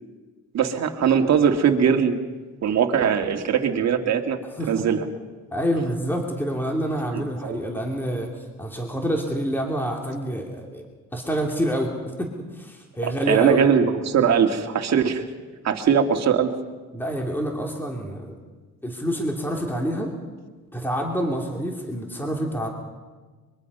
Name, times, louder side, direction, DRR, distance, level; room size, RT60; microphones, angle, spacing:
voice 1, 0.5-2.2 2.6-5.0 7.1-7.6 13.0-15.2 15.6-16.5, right 7 dB, 60° right, 4 dB, 2.1 m, -21 dB
voice 2, 5.5-10.8 11.1-13.7 16.9-18.3 18.8-20.1 20.7-22.7, equal, 5° left, 1 dB, 2.8 m, -27 dB
23.5 x 22.5 x 5.5 m, 1.3 s
cardioid pair, 90°, 30 cm